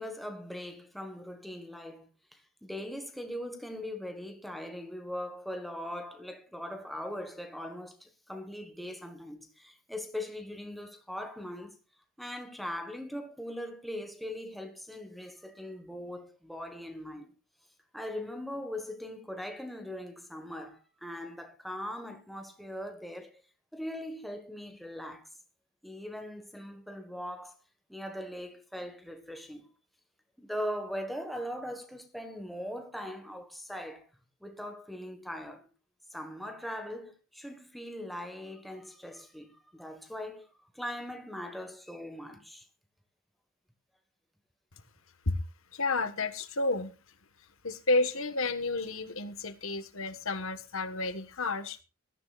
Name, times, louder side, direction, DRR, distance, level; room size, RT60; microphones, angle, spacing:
voice 1, 0.0-11.8 12.2-17.3 17.9-23.4 23.7-25.3 25.8-27.6 27.9-29.7 30.4-34.1 34.4-35.7 36.1-40.5 40.7-42.7, left 1 dB, ahead, 1.5 m, -40 dB
voice 2, 45.7-46.9 47.6-51.8, left 2 dB, 65° left, 1.4 m, -31 dB
20.0 x 13.5 x 2.5 m
head